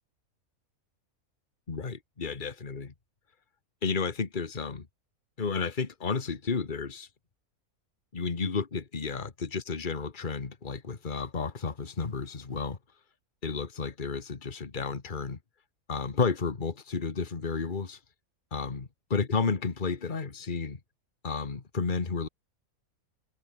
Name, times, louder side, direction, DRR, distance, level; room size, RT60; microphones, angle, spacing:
voice 1, 1.7-2.9 3.8-4.9 5.4-7.1 8.1-12.8 13.4-15.4 15.9-18.0 18.5-20.8 21.2-22.3, left 4 dB, 35° left, 1.8 m, -32 dB
omnidirectional pair, 1.5 m